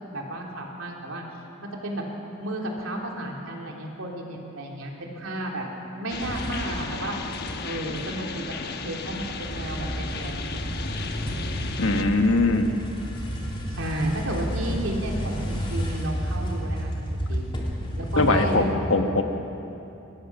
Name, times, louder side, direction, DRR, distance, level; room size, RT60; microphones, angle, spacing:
voice 1, 0.1-1.2 1.6-2.0 2.4-5.6 5.9-7.2 7.6-11.0 13.7-17.5 17.9-18.6, right 1 dB, 75° right, 0 dB, 3.3 m, -32 dB
sound 1, 6.1-12.0, left 4 dB, 50° left, 1.1 m, -35 dB
sound 2, 6.2-7.7 7.9-18.6, equal, 25° left, 2.8 m, -31 dB
voice 2, 11.8-12.7 18.2-19.2, left 2 dB, 70° left, 5 dB, 1.5 m, -21 dB
23.5 x 18.5 x 6.2 m, 2.9 s
head